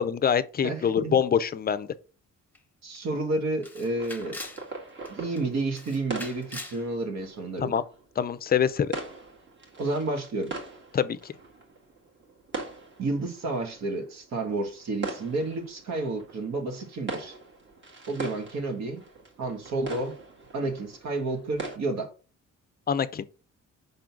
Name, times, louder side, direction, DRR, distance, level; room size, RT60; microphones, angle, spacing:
voice 1, 0.0-1.9 7.6-7.8 8.2-8.9 10.9-11.3 22.9-23.2, left 7 dB, 30° left, 0.5 m, -25 dB
voice 2, 0.6-1.2 2.8-4.4 5.1-7.8 9.8-10.5 13.0-17.4 18.1-19.0 19.4-20.1 20.5-22.1, right 2 dB, 65° right, 1.7 m, -30 dB
Camera, 2.5-2.6 2.9-3.0 3.6-4.6 5.0-5.4 5.7-6.8, left 2 dB, 5° left, 0.9 m, -41 dB
sound 1, 3.8-21.8, right 3 dB, 40° right, 2.0 m, -42 dB
5.5 x 3.8 x 5.9 m
cardioid pair, 130°, 29 cm